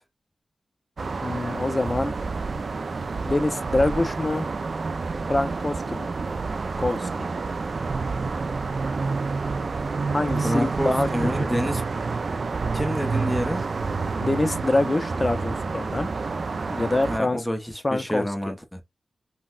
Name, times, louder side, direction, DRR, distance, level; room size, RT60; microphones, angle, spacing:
sound 1, 1.0-17.2, right 4 dB, 60° right, 0.3 m, -28 dB
voice 1, 1.2-2.1 3.2-4.5 5.3-6.1 6.8-7.3 10.0-11.1 11.4-11.5 14.2-16.1 16.7-17.5 17.8-18.5, left 2 dB, 30° left, 0.5 m, -25 dB
voice 2, 10.4-11.8 12.7-13.7 17.1-18.8, equal, ahead, 0.8 m, -28 dB
4.0 x 2.1 x 2.3 m
cardioid pair, 55°, 0 cm